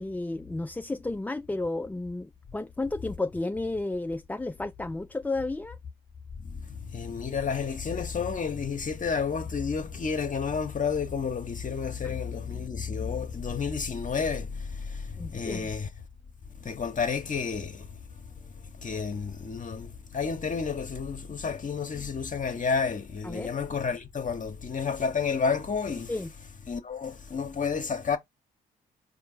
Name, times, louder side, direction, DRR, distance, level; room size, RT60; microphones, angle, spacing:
voice 1, 0.0-5.8 12.0-12.1 15.2-15.7 23.2-23.5 26.1-26.3, left 2 dB, 10° left, 0.3 m, -32 dB
voice 2, 6.9-15.0 15.3-15.9 16.6-17.9 18.8-26.1 26.7-28.2, left 5 dB, 40° left, 0.9 m, -30 dB
4.4 x 2.8 x 4.2 m
supercardioid pair, 50°, 20 cm